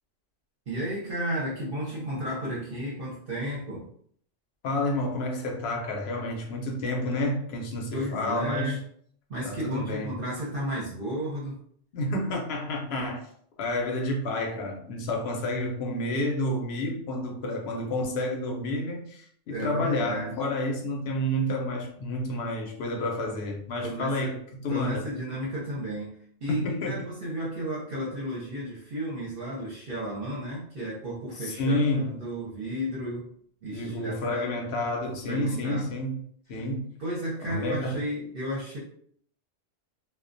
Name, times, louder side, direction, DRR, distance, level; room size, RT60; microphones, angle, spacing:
voice 1, 0.7-3.9 7.9-8.8 9.3-11.6 19.5-20.3 23.8-24.3 24.7-33.3 33.6-34.5 35.3-35.9 37.0-38.8, equal, 55° right, -6 dB, 0.8 m, -33 dB
voice 2, 4.6-8.8 9.5-10.2 11.9-13.3 13.6-25.1 26.5-27.0 31.4-32.1 33.7-36.2 36.5-36.9 37.5-38.0, left 1 dB, 65° left, 1 dB, 0.7 m, -30 dB
2.3 x 2.1 x 2.5 m, 0.62 s
omnidirectional pair, 1.3 m